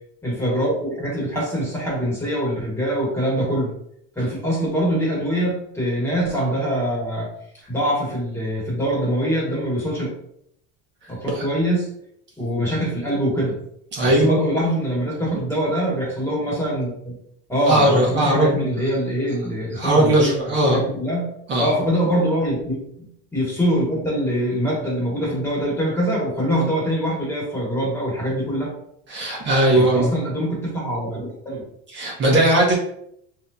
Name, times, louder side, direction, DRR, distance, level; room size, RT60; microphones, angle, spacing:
voice 1, 0.2-3.7 4.1-7.3 7.7-10.1 11.1-11.9 12.4-13.6 14.0-17.2 17.5-21.3 21.6-28.7 29.7-31.6, equal, 10° left, -5 dB, 1.2 m, -24 dB
voice 2, 13.9-14.4 17.7-18.7 19.7-20.8 21.5-21.7 29.1-30.1 31.9-32.7, right 1 dB, 35° right, -2 dB, 0.8 m, -18 dB
5.2 x 2.8 x 2.3 m, 0.72 s
cardioid pair, 160°, 31 cm